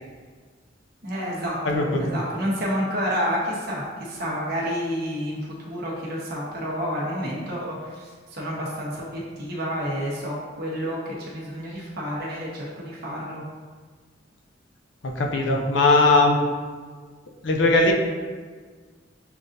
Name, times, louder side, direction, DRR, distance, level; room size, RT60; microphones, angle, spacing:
voice 1, 1.0-13.4, equal, 55° right, -5 dB, 1.1 m, -29 dB
voice 2, 1.6-2.1 15.0-16.4 17.4-17.9, left 2 dB, 70° left, 1 dB, 0.6 m, -19 dB
7.0 x 2.5 x 2.6 m, 1.5 s
head